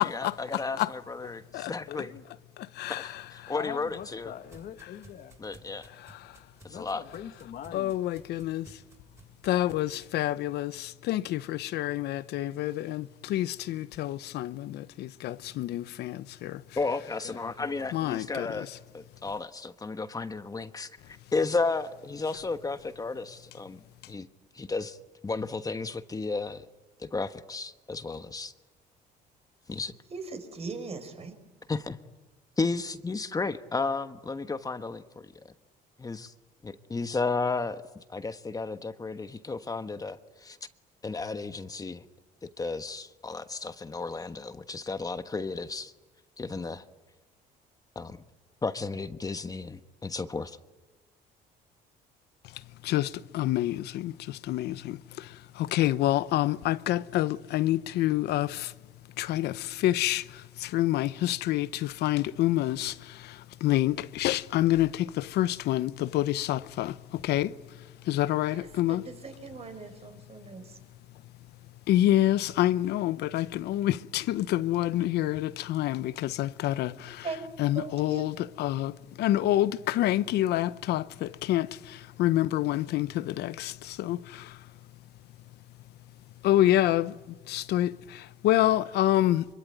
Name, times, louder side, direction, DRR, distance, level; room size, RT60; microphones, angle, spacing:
voice 1, 0.0-2.1 2.9-4.3 5.4-5.9 6.6-7.0 16.7-18.7 18.9-23.8 24.1-24.3 24.5-25.0 25.2-26.7 27.0-28.5 29.7-29.9 31.7-32.0 32.6-35.3 36.0-36.3 36.6-40.6 41.0-42.0 42.4-45.9 46.4-46.8 47.9-48.2 48.6-50.6, left 3 dB, 20° left, 1.3 m, -33 dB
voice 2, 1.9-2.2 3.5-5.4 6.7-7.9 17.2-17.9, left 10 dB, 60° left, 1.5 m, -42 dB
sound 1, 3.6-10.1, right 3 dB, 15° right, 6.4 m, -57 dB
voice 3, 7.7-8.6 9.5-10.7 11.1-13.0 13.3-14.5 15.2-16.1 17.9-18.5 52.9-53.1 53.3-53.8 54.0-54.1 54.5-54.7 55.7-58.5 59.2-59.5 59.8-60.2 60.7-61.7 62.0-62.9 63.6-64.9 65.4-66.9 67.3-67.5 68.1-69.0 71.9-76.1 76.4-76.9 77.6-78.9 79.2-81.0 81.5-81.7 82.2-83.1 83.4-83.5 84.1-84.2 86.4-87.1 87.5-87.9 88.4-89.4, left 14 dB, 75° left, 0.9 m, -26 dB
voice 4, 30.1-31.3 68.5-70.8 77.0-77.5 77.8-78.3, right 4 dB, 40° right, 5.1 m, -40 dB
25.5 x 24.5 x 9.5 m
cardioid pair, 110°, 17 cm